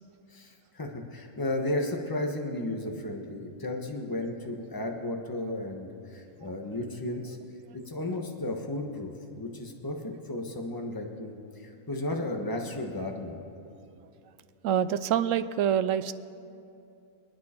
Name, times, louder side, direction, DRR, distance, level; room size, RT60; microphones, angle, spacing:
voice 1, 0.3-7.4 7.7-13.4, left 1 dB, 15° left, 2 dB, 1.3 m, -34 dB
voice 2, 14.6-16.1, right 9 dB, 70° right, 13 dB, 0.8 m, -26 dB
27.5 x 9.4 x 4.4 m, 2.7 s
omnidirectional pair, 1.6 m